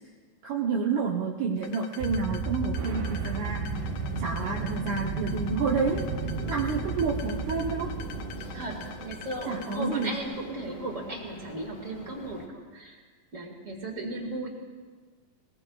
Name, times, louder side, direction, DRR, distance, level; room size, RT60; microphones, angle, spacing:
voice 1, 0.4-3.6 4.2-6.1 6.5-7.9 9.5-10.2, right 4 dB, 70° right, -2 dB, 2.3 m, -29 dB
sound 1, 1.6-10.2, left 8 dB, 75° left, 2.3 m, -46 dB
sound 2, 2.0-9.7, right 4 dB, 90° right, 3.1 m, -33 dB
sound 3, 3.7-12.5, left 1 dB, 55° left, 0.9 m, -47 dB
voice 2, 8.5-13.0 13.3-14.5, right 1 dB, 30° right, 0 dB, 1.7 m, -36 dB
21.0 x 20.0 x 2.3 m, 1.5 s
omnidirectional pair, 3.8 m